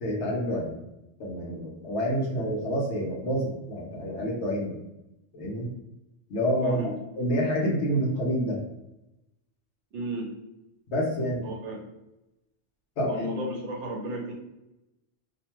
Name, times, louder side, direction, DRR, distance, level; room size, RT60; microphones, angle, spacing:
voice 1, 0.0-0.8 1.2-4.8 5.3-5.7 6.3-6.8 7.2-8.6 10.9-11.4 13.0-13.2, equal, 65° left, -2 dB, 1.0 m, -28 dB
voice 2, 9.9-10.3 11.4-11.8 13.1-14.3, right 1 dB, 70° right, 0 dB, 1.0 m, -33 dB
2.7 x 2.2 x 2.9 m, 0.93 s
omnidirectional pair, 1.3 m